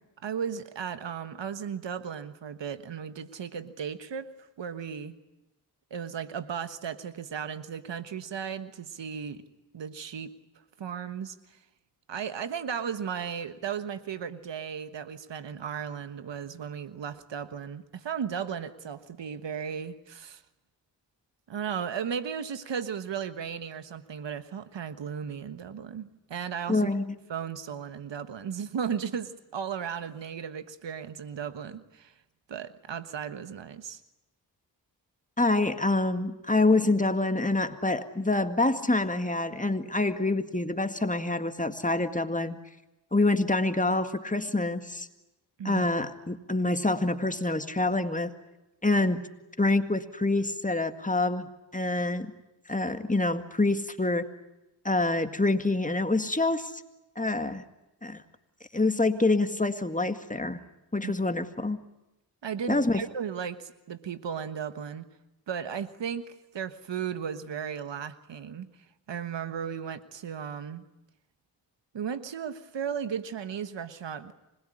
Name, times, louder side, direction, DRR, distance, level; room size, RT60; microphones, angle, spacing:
voice 1, 0.2-5.1 5.9-9.4 9.7-10.3 10.8-11.6 12.1-20.4 21.5-26.9 27.3-32.1 32.5-34.0 45.6-45.9 61.0-61.1 62.4-65.0 65.5-68.7 69.1-70.8 71.9-74.3, right 7 dB, 85° right, 11 dB, 1.4 m, -35 dB
voice 2, 26.7-27.1 35.4-42.6 43.1-45.1 45.6-48.3 48.8-49.3 49.6-51.5 51.7-52.3 52.7-54.3 54.8-56.7 57.2-57.6 58.0-58.2 58.7-60.6 60.9-61.8 62.7-63.0, left 2 dB, 20° left, 8 dB, 2.0 m, -26 dB
26.0 x 20.5 x 9.8 m, 0.96 s
cardioid pair, 50°, 43 cm